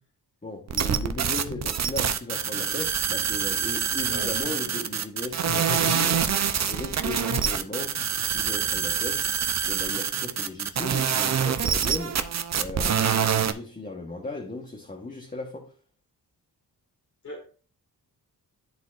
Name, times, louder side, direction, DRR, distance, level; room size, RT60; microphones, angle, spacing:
voice 1, 0.4-6.1 6.7-8.0 8.3-9.2 9.7-12.2 12.6-15.7, left 2 dB, 20° left, 1.1 m, -36 dB
sound 1, 0.7-13.5, right 7 dB, 45° right, 0.6 m, -26 dB
voice 2, 4.0-4.4 5.5-6.3 7.3-7.4 17.2-17.6, left 2 dB, 45° left, 1.5 m, -36 dB
10.5 x 4.0 x 2.5 m
cardioid pair, 65°, 39 cm